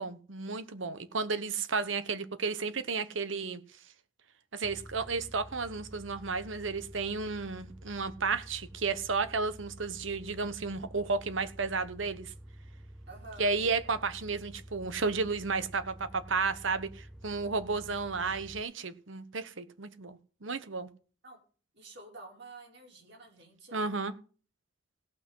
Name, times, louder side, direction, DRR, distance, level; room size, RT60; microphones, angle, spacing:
voice 1, 0.0-3.6 4.5-12.3 13.4-20.9 23.7-24.1, right 4 dB, 80° right, 13 dB, 1.2 m, -33 dB
sound 1, 4.6-18.6, right 1 dB, 5° right, 0.5 m, -50 dB
voice 2, 13.1-13.5 21.2-21.4 21.7-24.0, right 2 dB, 60° right, -1 dB, 5.6 m, -50 dB
17.0 x 6.1 x 5.6 m, 0.39 s
head